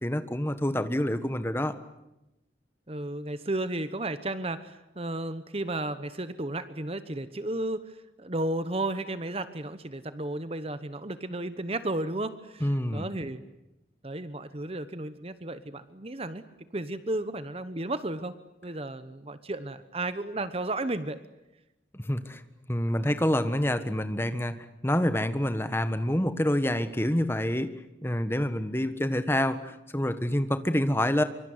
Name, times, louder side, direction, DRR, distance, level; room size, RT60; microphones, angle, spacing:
voice 1, 0.0-1.7 12.6-13.1 21.9-22.4 22.7-24.6 24.8-27.7 28.0-31.2, left 1 dB, 15° left, 10 dB, 1.5 m, -27 dB
voice 2, 2.9-7.9 8.2-13.4 14.0-16.4 16.7-18.4 18.6-21.2, right 2 dB, 30° right, 12 dB, 1.1 m, -33 dB
25.0 x 24.5 x 9.5 m, 0.92 s
head